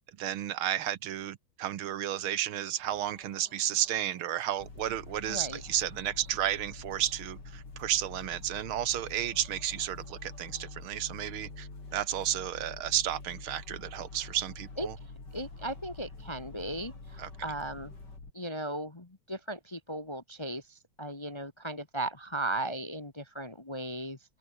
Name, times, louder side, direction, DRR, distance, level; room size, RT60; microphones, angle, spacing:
voice 1, 0.2-15.0 17.2-17.3, right 11 dB, 80° right, 1.9 m, -32 dB
sound 1, 2.7-18.2, left 2 dB, 55° left, 8.6 m, -60 dB
sound 2, 4.6-18.3, left 3 dB, 80° left, 6.0 m, -46 dB
voice 2, 5.3-5.6 14.8-17.9 18.3-24.2, right 1 dB, 20° left, 1.0 m, -37 dB
omnidirectional pair, 2.3 m